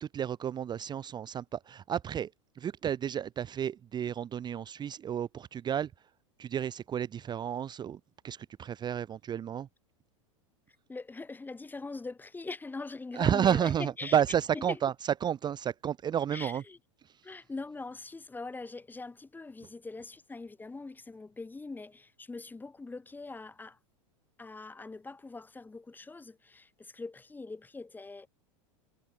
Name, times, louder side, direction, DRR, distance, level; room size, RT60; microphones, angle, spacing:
voice 1, 0.0-2.3 2.6-5.9 6.4-9.7 13.1-16.6 17.0-17.2, right 9 dB, 25° right, 0.7 m, -31 dB
voice 2, 10.9-14.2 14.5-14.8 16.3-16.8 17.2-23.8 24.4-28.3, left 3 dB, 10° left, 1.5 m, -42 dB
hypercardioid pair, 100°, 17 cm